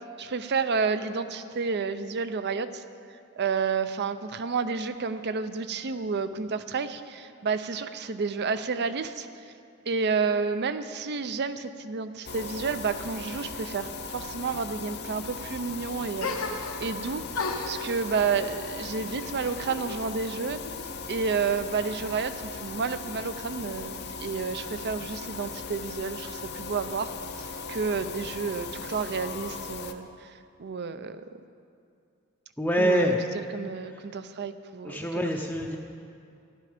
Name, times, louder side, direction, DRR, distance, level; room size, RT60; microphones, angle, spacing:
voice 1, 0.2-2.8 3.4-9.3 9.9-20.6 21.1-27.1 27.4-30.3 30.6-31.2 32.8-33.1 33.5-35.3, right 5 dB, 55° right, 11 dB, 0.6 m, -30 dB
sound 1, 12.3-29.9, left 4 dB, 55° left, 0.7 m, -38 dB
sound 2, 16.2-17.0 17.3-20.1 20.4-21.2, left 3 dB, 90° left, 1.1 m, -36 dB
voice 2, 32.6-33.2 33.9-34.0 34.8-35.8, equal, 10° left, 0 dB, 0.6 m, -25 dB
13.0 x 11.5 x 5.1 m, 2.4 s
head